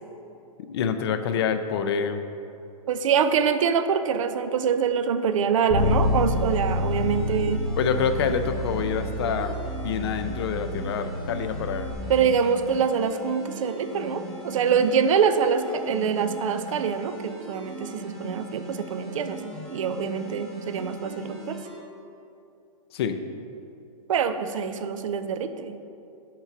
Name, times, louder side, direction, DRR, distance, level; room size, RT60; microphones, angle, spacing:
voice 1, 0.7-2.2 7.8-11.9 22.9-23.2, left 6 dB, 45° left, 9 dB, 0.4 m, -27 dB
voice 2, 2.9-7.6 12.1-19.4 19.7-21.6 24.1-25.8, right 7 dB, 65° right, 10 dB, 0.5 m, -25 dB
Bass guitar, 5.7-11.9, left 2 dB, 85° left, 1.3 m, -28 dB
sound 1, 5.8-21.8, right 2 dB, 5° left, 0.6 m, -39 dB
5.8 x 4.6 x 5.7 m, 2.7 s
hypercardioid pair, 165°, 18 cm